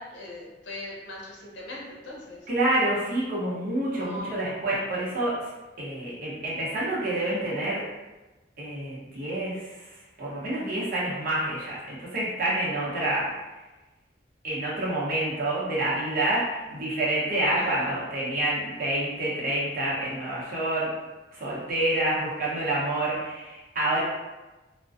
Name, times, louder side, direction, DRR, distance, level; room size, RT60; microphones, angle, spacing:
voice 1, 0.0-2.5 3.9-4.5 17.6-18.0, left 1 dB, 90° left, -4 dB, 0.6 m, -40 dB
voice 2, 2.5-5.5 5.8-7.8 8.6-13.3 14.4-20.9 21.3-24.0, right 1 dB, 50° right, -6 dB, 0.8 m, -28 dB
2.4 x 2.1 x 2.5 m, 1.1 s
head